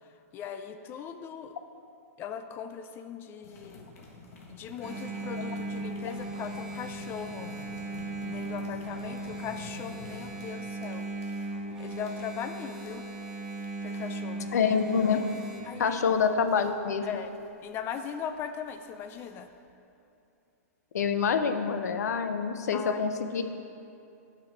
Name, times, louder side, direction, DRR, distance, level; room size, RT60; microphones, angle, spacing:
voice 1, 0.3-1.5 2.2-3.9 4.5-7.6 8.2-11.1 11.8-13.0 13.8-14.6 15.6-16.0 17.0-17.3 17.6-19.5 22.7-23.0, left 8 dB, 25° left, 9 dB, 0.4 m, -39 dB
sound 1, 3.4-19.7, left 2 dB, 65° left, 1.5 m, -50 dB
Engine, 4.8-15.6, right 2 dB, 5° right, 1.0 m, -37 dB
voice 2, 14.5-15.3 15.8-17.0 20.9-23.4, left 6 dB, 85° left, 8 dB, 0.6 m, -26 dB
8.5 x 6.1 x 4.5 m, 2.7 s
hypercardioid pair, 140°, 9 cm